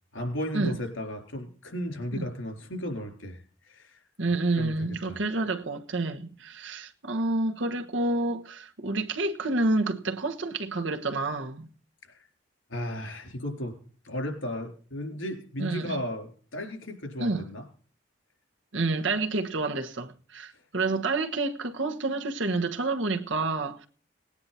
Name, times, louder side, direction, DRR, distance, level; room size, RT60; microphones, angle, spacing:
voice 1, 0.1-3.4 3.7-4.0 4.5-5.2 12.1-12.2 12.7-13.7 14.0-17.6, left 1 dB, 90° left, 4.1 m, -35 dB
voice 2, 4.2-11.7 15.6-16.0 17.2-17.4 18.7-23.9, right 2 dB, 75° right, 1.3 m, -29 dB
18.5 x 9.7 x 4.2 m
head